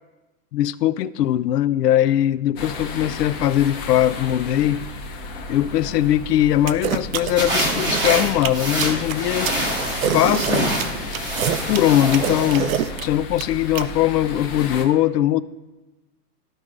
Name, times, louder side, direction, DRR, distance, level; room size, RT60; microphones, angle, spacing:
voice 1, 0.5-4.8 5.5-9.7 10.1-10.7 11.7-15.4, left 12 dB, 80° left, 0.5 m, -20 dB
sound 1, 2.6-14.8, left 3 dB, 30° left, 1.0 m, -33 dB
sound 2, 6.7-13.8, right 9 dB, 60° right, 0.6 m, -26 dB
sound 3, 7.3-12.7, right 1 dB, 10° right, 0.8 m, -26 dB
13.5 x 4.8 x 2.5 m
hypercardioid pair, 155°, 48 cm